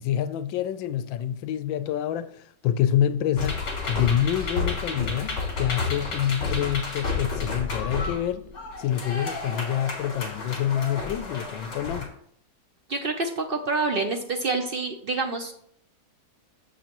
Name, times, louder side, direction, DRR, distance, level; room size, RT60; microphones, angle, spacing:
voice 1, 0.0-8.5 8.8-12.1, left 10 dB, 85° left, 1.3 m, -27 dB
sound 1, 3.3-12.1, left 4 dB, 50° left, 2.7 m, -31 dB
voice 2, 12.9-15.5, right 3 dB, 70° right, 0.5 m, -27 dB
11.5 x 7.2 x 3.0 m
omnidirectional pair, 2.0 m